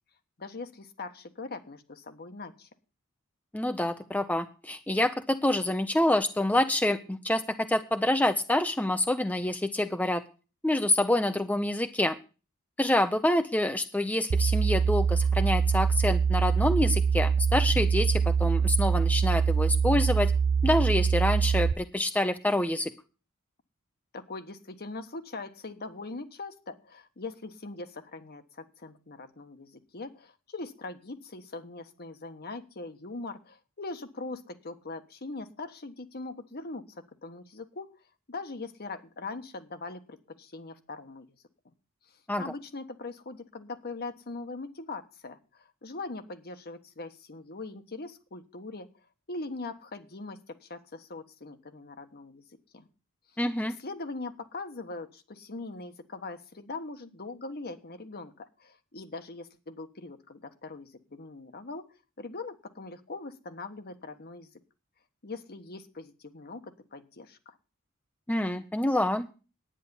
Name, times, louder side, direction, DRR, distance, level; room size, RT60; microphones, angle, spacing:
voice 1, 0.4-2.7 24.1-37.9 38.3-41.3 42.4-48.9 49.3-52.4 52.7-52.9 53.6-61.8 62.2-64.5 65.2-67.5, left 3 dB, 50° left, 8 dB, 1.3 m, -41 dB
voice 2, 3.5-10.2 10.6-12.2 12.8-20.3 20.6-22.9 42.3-42.4 53.4-53.8 68.3-69.3, left 1 dB, 5° left, 8 dB, 0.6 m, -27 dB
sound 1, 14.3-21.7, right 6 dB, 75° right, 0.6 m, -24 dB
10.5 x 9.6 x 7.0 m, 0.35 s
head